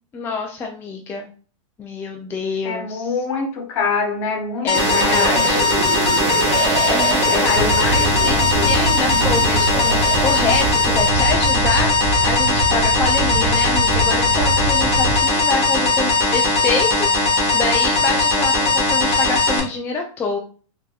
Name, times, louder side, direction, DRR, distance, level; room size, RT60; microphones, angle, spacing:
voice 1, 0.1-1.3 1.8-3.1 4.6-5.7 6.7-20.4, left 4 dB, 15° left, 2 dB, 0.3 m, -26 dB
voice 2, 2.6-6.1 7.3-8.7, left 4 dB, 55° left, 2 dB, 1.1 m, -26 dB
sound 1, 4.7-19.6, left 3 dB, 35° left, 1.2 m, -19 dB
sound 2, 4.7-11.1, right 6 dB, 55° right, 0.6 m, -26 dB
sound 3, 7.5-15.2, right 1 dB, 70° right, 1.1 m, -24 dB
3.6 x 2.7 x 2.3 m, 0.41 s
supercardioid pair, 135°, 18 cm